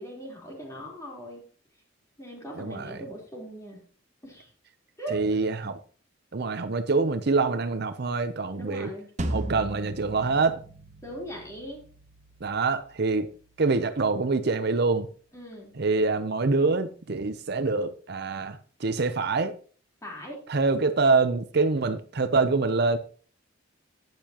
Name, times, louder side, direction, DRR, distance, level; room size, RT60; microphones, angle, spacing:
voice 1, 0.0-1.4 2.2-3.8 4.2-4.5 5.0-5.4 8.5-9.1 11.0-11.8 15.3-15.7 20.0-20.4, right 1 dB, 15° left, 3.8 m, -39 dB
voice 2, 2.6-3.0 5.1-5.8 6.3-8.9 9.3-10.6 12.4-13.3 13.6-15.1 15.8-19.6 20.5-23.0, right 3 dB, 55° right, 0.7 m, -25 dB
sound 1, 9.2-14.3, right 1 dB, 35° right, 1.0 m, -38 dB
12.0 x 9.4 x 2.9 m
head